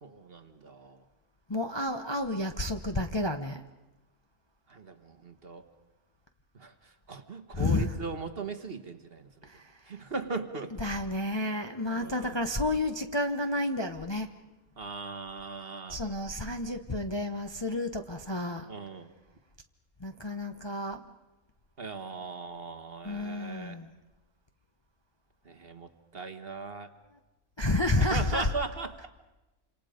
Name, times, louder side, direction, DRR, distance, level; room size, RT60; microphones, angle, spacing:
voice 1, 0.0-1.0 4.7-5.6 6.5-9.3 9.9-10.9 11.9-12.4 14.8-16.0 18.7-19.1 21.8-23.8 25.4-26.9 28.0-29.1, right 3 dB, 45° right, 8 dB, 1.5 m, -39 dB
voice 2, 1.5-3.6 7.5-7.9 9.5-10.0 10.8-14.3 15.9-18.7 20.0-21.0 23.0-23.9 27.6-28.5, left 1 dB, 20° left, 5 dB, 0.9 m, -30 dB
27.5 x 27.0 x 5.1 m, 1.0 s
omnidirectional pair, 1.5 m